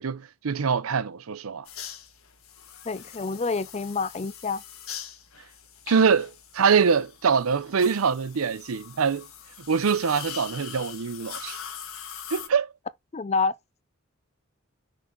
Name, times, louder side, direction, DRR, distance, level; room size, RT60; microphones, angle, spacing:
voice 1, 0.0-1.6 5.9-9.3 9.7-11.6 12.3-12.7, right 6 dB, 85° right, 0.6 m, -24 dB
sound 1, 1.6-12.5, left 8 dB, 80° left, 1.6 m, -42 dB
voice 2, 2.8-4.6 13.1-13.5, left 4 dB, 30° left, 0.5 m, -28 dB
6.1 x 3.9 x 4.4 m
head